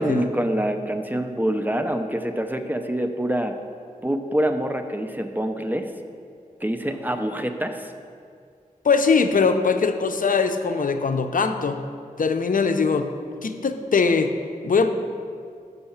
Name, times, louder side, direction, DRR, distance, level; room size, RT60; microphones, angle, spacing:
voice 1, 0.0-3.6 4.0-5.9 6.6-7.9, right 1 dB, 10° right, 6 dB, 0.7 m, -25 dB
voice 2, 8.8-11.8 12.2-13.1 13.4-14.3 14.6-14.9, left 5 dB, 65° left, 7 dB, 0.6 m, -21 dB
6.6 x 5.6 x 7.2 m, 2.2 s
cardioid pair, 50°, 15 cm